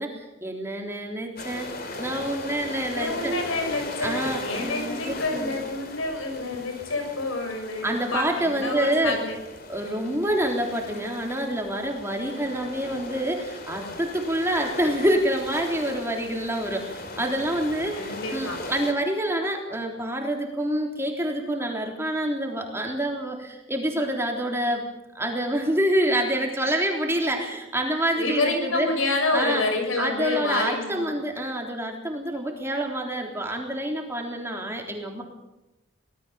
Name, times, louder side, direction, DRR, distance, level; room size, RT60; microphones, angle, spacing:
voice 1, 0.0-3.3 4.0-5.6 7.8-9.2 9.7-24.8 25.2-28.9 29.3-29.6 30.0-35.2, right 1 dB, 10° right, 1 dB, 3.5 m, -27 dB
sound 1, 1.4-18.9, left 2 dB, 45° left, 3.0 m, -38 dB
voice 2, 2.9-9.4 18.0-18.6 28.2-31.1, left 2 dB, 85° left, 4 dB, 6.7 m, -28 dB
25.0 x 18.5 x 7.1 m, 0.95 s
head